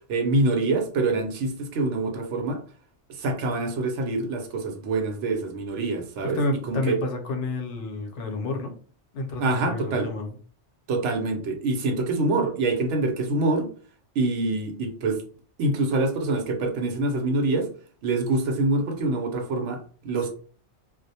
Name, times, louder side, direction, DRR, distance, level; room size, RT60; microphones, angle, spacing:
voice 1, 0.0-2.6 3.1-6.4 6.7-7.0 9.4-10.1 10.9-13.7 14.2-15.2 15.6-17.7 18.0-20.3, right 2 dB, 80° right, 4 dB, 0.9 m, -25 dB
voice 2, 6.2-8.8 9.1-10.3, left 2 dB, 80° left, 3 dB, 0.9 m, -30 dB
2.3 x 2.0 x 2.7 m, 0.42 s
omnidirectional pair, 1.2 m